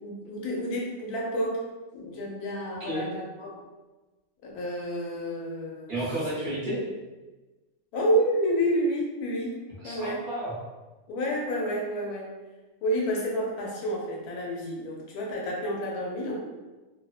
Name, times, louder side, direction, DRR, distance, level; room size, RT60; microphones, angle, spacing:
voice 1, 0.0-1.6 1.9-3.6 4.4-6.0 7.9-9.6 9.8-10.2 11.1-12.3 12.8-16.4, equal, 85° left, -2 dB, 1.2 m, -29 dB
voice 2, 5.9-6.8 9.8-10.5, right 1 dB, 50° right, -9 dB, 1.1 m, -31 dB
3.1 x 2.0 x 2.3 m, 1.2 s
omnidirectional pair, 1.6 m